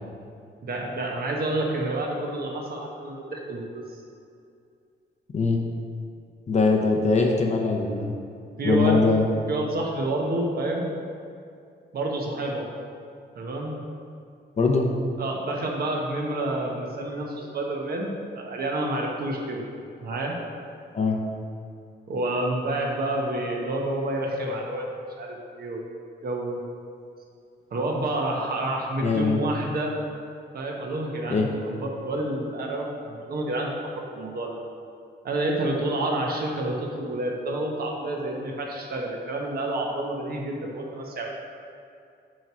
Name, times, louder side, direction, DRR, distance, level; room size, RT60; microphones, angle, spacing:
voice 1, 0.6-3.9 8.6-9.1 9.5-10.9 11.9-12.7 13.3-13.9 15.2-19.7 20.0-20.4 22.1-24.9 25.2-25.9 26.2-26.6 27.7-29.9 30.5-34.6 35.2-41.3, right 1 dB, 55° right, -1 dB, 1.2 m, -29 dB
voice 2, 6.5-8.1 8.6-9.3 14.6-14.9 20.9-21.2 29.0-29.4 31.3-31.5, left 4 dB, 40° left, 2 dB, 0.8 m, -22 dB
8.9 x 3.1 x 6.1 m, 2.4 s
cardioid pair, 130°, 19 cm